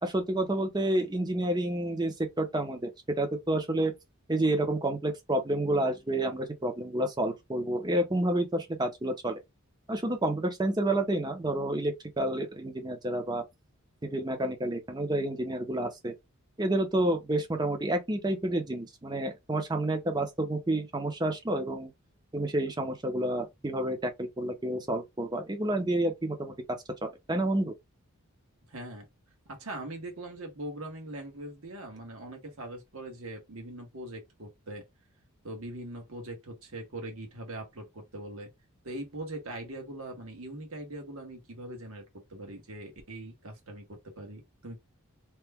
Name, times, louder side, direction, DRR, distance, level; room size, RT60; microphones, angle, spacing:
voice 1, 0.0-2.9 3.2-3.9 4.3-9.4 9.9-13.4 14.0-16.1 16.6-21.9 22.3-26.5 27.0-27.7, right 1 dB, 20° right, 0.6 m, -29 dB
voice 2, 28.7-29.1 29.5-34.8 35.4-38.5 38.8-44.8, right 1 dB, 75° right, 1.3 m, -41 dB
2.9 x 2.2 x 3.5 m
head